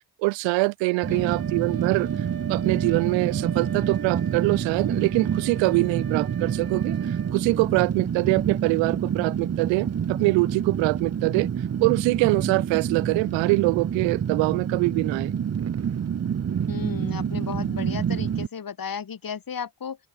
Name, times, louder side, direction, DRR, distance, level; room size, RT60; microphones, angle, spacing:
voice 1, 0.2-2.1 2.5-11.5 11.8-15.3, right 25 dB, 85° right, 0.7 m, -24 dB
Wind instrument woodwind instrument, 0.8-7.4, right 7 dB, 50° right, 2.4 m, -42 dB
Fire, 1.0-18.5, right 8 dB, 35° right, 0.8 m, -27 dB
voice 2, 1.1-1.5 16.7-20.0, left 7 dB, 50° left, 2.5 m, -34 dB
open air
hypercardioid pair, 40°, 44 cm